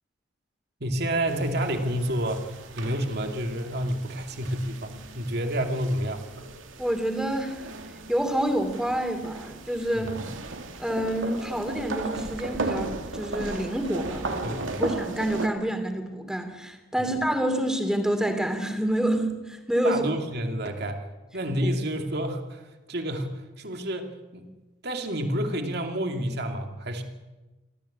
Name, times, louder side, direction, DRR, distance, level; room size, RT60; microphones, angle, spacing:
voice 1, 0.8-6.2 9.9-10.3 14.4-14.9 17.0-17.1 19.8-21.0 21.3-24.4 24.8-27.0, right 1 dB, 55° right, 4 dB, 2.5 m, -29 dB
sound 1, 1.3-15.5, right 2 dB, 80° right, 2.3 m, -36 dB
voice 2, 6.8-7.6 8.1-10.1 10.8-20.0 21.6-21.7, right 1 dB, 5° right, 6 dB, 2.8 m, -28 dB
28.0 x 14.0 x 8.6 m, 1.2 s
head